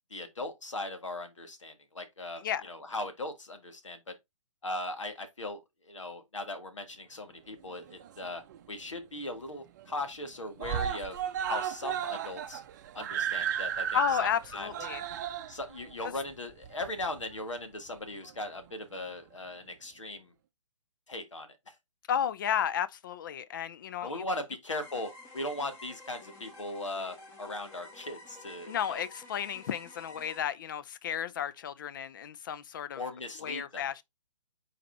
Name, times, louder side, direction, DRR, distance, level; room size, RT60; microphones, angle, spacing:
voice 1, 0.1-4.1 4.6-8.4 8.7-11.2 11.5-12.6 12.9-14.7 15.5-20.3 21.1-21.8 24.0-29.0 33.0-33.9, left 2 dB, 75° left, 1.7 m, -38 dB
Screaming, 7.7-8.6 9.0-9.1 9.4-9.5 9.8-10.3 10.6-17.4 18.2-18.3, right 9 dB, 35° right, 0.6 m, -35 dB
voice 2, 13.9-15.0 22.1-24.2 28.7-33.0 33.4-34.0, left 9 dB, 40° left, 0.5 m, -33 dB
sound 1, 24.7-30.4, left 2 dB, 15° left, 1.5 m, -51 dB
5.0 x 4.3 x 4.4 m
figure-of-eight pair, 130°, 16 cm